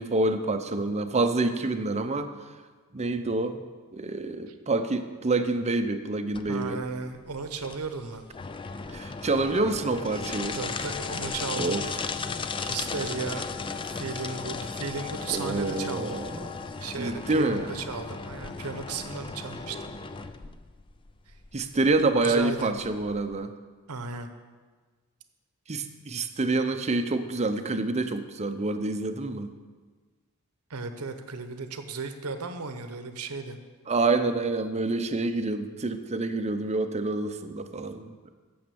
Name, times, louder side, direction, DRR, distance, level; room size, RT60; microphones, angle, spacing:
voice 1, 0.0-2.3 2.9-3.6 3.9-6.8 8.9-10.6 11.6-11.9 15.3-16.3 17.0-17.7 21.5-23.5 25.7-29.5 33.9-38.1, right 2 dB, 30° right, 9 dB, 0.6 m, -27 dB
sound 1, 6.3-23.4, left 4 dB, 20° left, 0.4 m, -36 dB
voice 2, 6.5-8.3 10.5-11.8 12.6-13.5 13.8-16.2 16.8-19.9 21.3-21.4 22.2-22.7 23.9-24.3 30.7-33.6, right 4 dB, 80° right, 8 dB, 0.9 m, -35 dB
9.2 x 7.2 x 6.9 m, 1.4 s
head